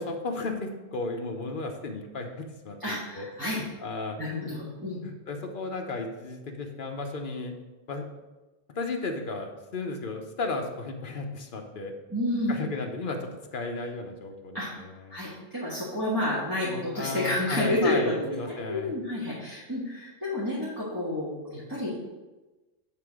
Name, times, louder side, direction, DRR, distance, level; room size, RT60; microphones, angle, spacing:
voice 1, 0.0-4.2 5.0-7.5 7.9-8.1 8.7-11.9 12.5-15.2 16.9-18.9, left 3 dB, 55° left, 3 dB, 1.0 m, -34 dB
voice 2, 2.8-3.6 4.2-5.0 12.1-12.6 14.5-14.7 15.1-18.3 18.7-21.9, left 1 dB, 20° right, -10 dB, 1.7 m, -30 dB
8.8 x 3.8 x 4.8 m, 1.1 s
omnidirectional pair, 1.1 m